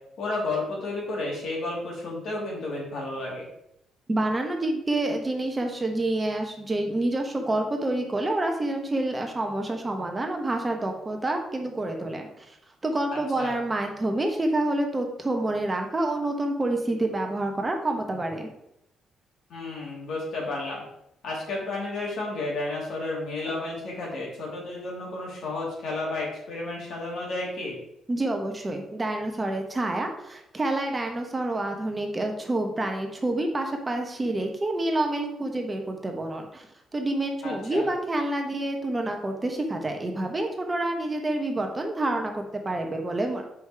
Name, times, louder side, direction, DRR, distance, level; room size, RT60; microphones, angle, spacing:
voice 1, 0.2-3.5 13.1-13.6 19.5-20.8 21.2-27.8 37.4-37.9, left 2 dB, 70° left, -3 dB, 2.7 m, -32 dB
voice 2, 4.1-12.6 12.8-18.5 28.1-36.7 36.9-43.4, right 2 dB, 25° right, 3 dB, 1.1 m, -28 dB
5.1 x 5.0 x 4.7 m, 0.80 s
cardioid pair, 90°, 0 cm